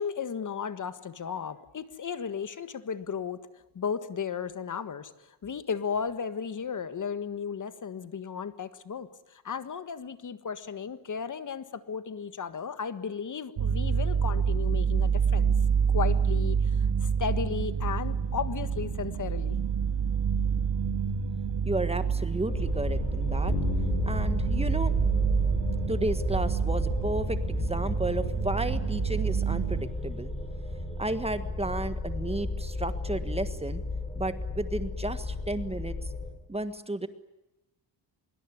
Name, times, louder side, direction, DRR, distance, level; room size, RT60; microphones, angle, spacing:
voice 1, 0.0-15.5 15.9-19.6, left 6 dB, 45° left, 12 dB, 1.6 m, -35 dB
sound 1, 13.6-29.8, right 6 dB, 80° right, 2.5 m, -28 dB
voice 2, 21.6-23.5 24.0-24.9 25.9-30.3 31.0-33.8 34.1-36.1 36.5-37.1, right 2 dB, 15° right, 11 dB, 1.5 m, -33 dB
sound 2, 22.5-36.3, left 2 dB, 10° left, 7.1 m, -33 dB
Bass guitar, 23.5-27.5, left 6 dB, 70° left, 6.4 m, -37 dB
25.0 x 23.0 x 9.9 m, 0.96 s
wide cardioid pair, 140°, 43 cm